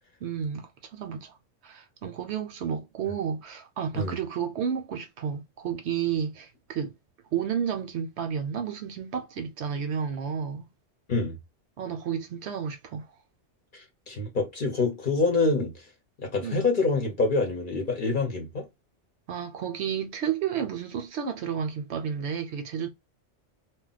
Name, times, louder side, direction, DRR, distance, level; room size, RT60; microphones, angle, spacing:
voice 1, 0.2-1.4 1.6-6.9 7.3-10.7 11.8-13.1 16.4-16.7 19.3-22.9, right 7 dB, 65° right, 0.8 m, -31 dB
voice 2, 13.7-15.7 16.2-18.7, left 3 dB, 45° left, 0.9 m, -26 dB
2.3 x 2.1 x 3.8 m
omnidirectional pair, 1.3 m